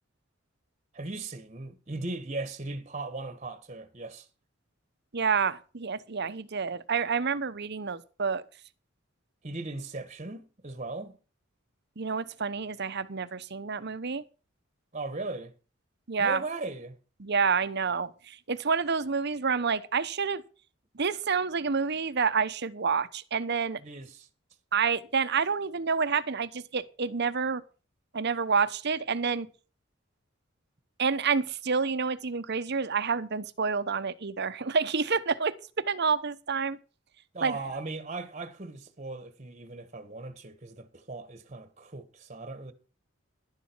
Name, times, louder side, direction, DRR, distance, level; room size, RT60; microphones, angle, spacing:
voice 1, 0.9-4.3 9.4-11.2 14.9-15.5 16.2-17.0 23.8-24.3 37.3-42.7, right 3 dB, 35° right, 1.4 m, -38 dB
voice 2, 5.1-8.4 12.0-14.2 16.1-16.4 17.2-20.4 20.9-23.8 24.7-27.6 28.1-29.5 31.0-36.8 37.4-37.6, right 5 dB, 55° right, 0.9 m, -28 dB
11.5 x 11.5 x 4.6 m
head